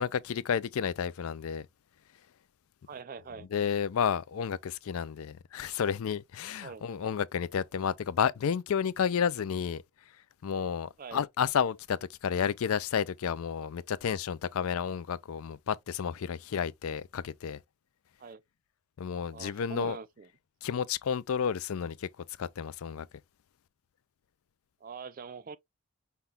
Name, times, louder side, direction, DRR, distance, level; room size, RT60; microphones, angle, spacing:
voice 1, 0.0-1.7 3.5-9.8 10.4-17.6 19.0-20.0 20.6-22.1 22.4-23.1, left 7 dB, 75° left, 0.4 m, -31 dB
voice 2, 2.9-3.5 6.6-6.8 11.0-11.2 18.2-18.4 19.3-20.3 24.8-25.6, right 5 dB, 40° right, 0.3 m, -43 dB
5.7 x 2.3 x 3.4 m
head